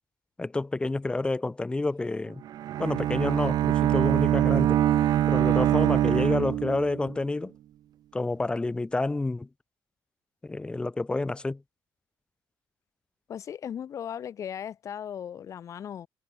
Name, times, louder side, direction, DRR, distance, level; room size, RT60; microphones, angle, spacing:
voice 1, 0.4-2.4 2.8-4.8 5.3-7.5 8.1-9.5 10.4-11.6, left 2 dB, 10° left, 7.0 m, -29 dB
Bowed string instrument, 2.4-7.2, right 12 dB, 60° right, 4.9 m, -24 dB
voice 2, 13.3-16.1, left 9 dB, 45° left, 6.7 m, -37 dB
cardioid pair, 150°, 7 cm